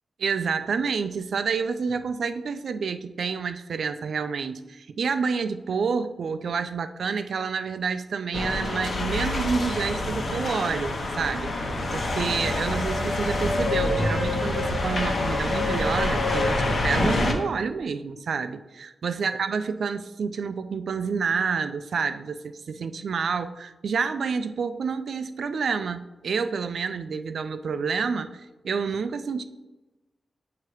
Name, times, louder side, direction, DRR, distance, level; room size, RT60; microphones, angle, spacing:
voice 1, 0.2-29.4, right 5 dB, 75° right, 11 dB, 0.3 m, -28 dB
sound 1, 8.3-17.3, left 2 dB, 55° left, 0.9 m, -26 dB
7.8 x 2.8 x 4.8 m, 1.1 s
wide cardioid pair, 105°, 0 cm